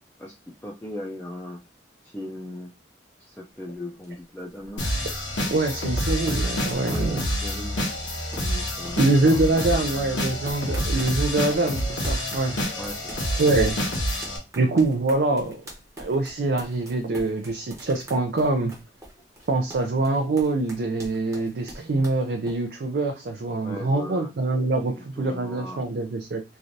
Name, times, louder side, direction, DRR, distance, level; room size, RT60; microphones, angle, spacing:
voice 1, 0.6-1.6 2.0-2.7 3.2-4.8 6.8-7.7 8.3-9.9 12.8-13.2 23.6-24.3 24.8-25.8, left 1 dB, 10° left, -4 dB, 0.4 m, -38 dB
sound 1, 3.5-22.6, right 1 dB, 15° right, 0.8 m, -44 dB
sound 2, 4.8-14.4, equal, 85° left, 1.1 m, -28 dB
voice 2, 5.5-7.2 9.0-12.6 13.4-13.8 14.6-15.6 16.0-18.8 19.5-26.4, right 2 dB, 60° right, 4 dB, 0.4 m, -24 dB
3.2 x 2.5 x 2.6 m, 0.25 s
head